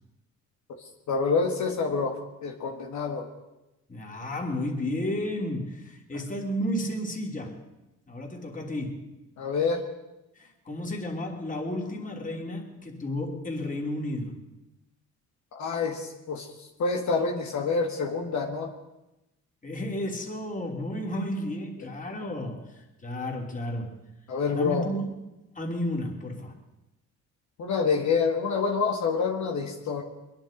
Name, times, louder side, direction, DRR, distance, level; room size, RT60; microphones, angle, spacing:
voice 1, 1.1-2.2 2.4-3.3 9.4-9.8 15.5-16.5 16.8-18.7 24.3-24.9 27.6-30.0, left 4 dB, 70° left, 1 dB, 1.9 m, -27 dB
voice 2, 3.9-7.7 8.1-9.2 10.4-14.5 19.6-24.1 24.5-25.0 25.5-26.6, left 1 dB, 25° left, 1 dB, 3.3 m, -32 dB
22.5 x 10.5 x 5.3 m, 0.96 s
cardioid pair, 90°, 30 cm